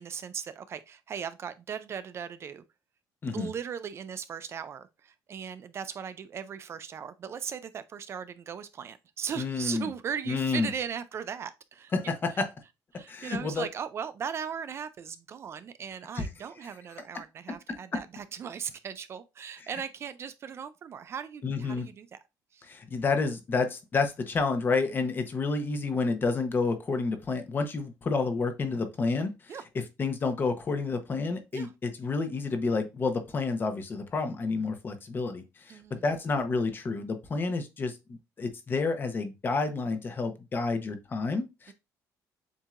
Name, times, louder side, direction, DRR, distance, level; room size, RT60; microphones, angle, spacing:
voice 1, 0.0-2.6 3.3-11.9 12.9-22.2 22.5-22.7 29.5-29.6 31.5-31.7 35.7-36.0 41.7-41.8, right 7 dB, 40° right, 0.4 m, -38 dB
voice 2, 9.4-9.9 10.3-10.7 11.9-12.5 13.1-13.7 16.1-16.3 19.6-19.7 21.4-21.9 22.6-29.6 30.0-41.7, left 4 dB, 30° left, 0.9 m, -30 dB
7.3 x 2.7 x 2.5 m
cardioid pair, 125°, 7 cm